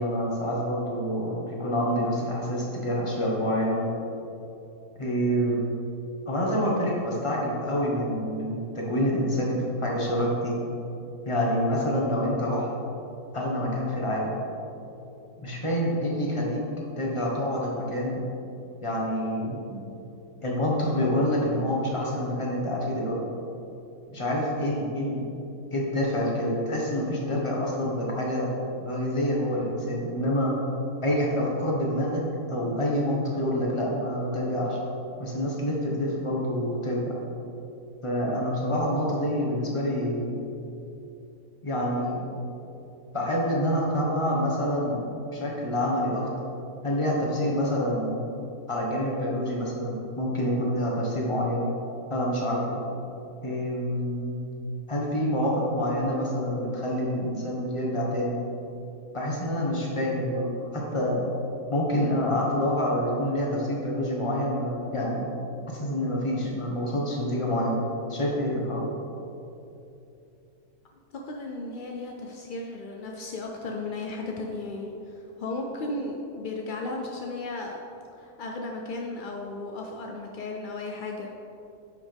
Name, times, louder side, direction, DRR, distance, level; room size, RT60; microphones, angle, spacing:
voice 1, 0.0-3.9 5.0-5.6 6.3-10.5 11.2-12.7 13.3-14.3 15.4-16.6 17.0-18.2 18.8-19.8 20.4-23.2 24.1-25.3 25.7-28.5 28.8-30.5 31.0-32.2 32.5-34.8 35.2-37.1 38.0-40.4 41.6-42.2 43.1-45.0 45.3-46.3 46.8-48.3 48.7-51.7 52.1-52.8 53.4-54.4 54.9-58.4 59.1-61.3 61.7-65.3 65.7-67.8 68.1-68.8, equal, 20° left, -3 dB, 1.3 m, -27 dB
voice 2, 71.1-77.8 78.2-81.3, left 2 dB, 65° left, 1 dB, 0.5 m, -35 dB
9.9 x 5.8 x 3.5 m, 2.9 s
omnidirectional pair, 1.6 m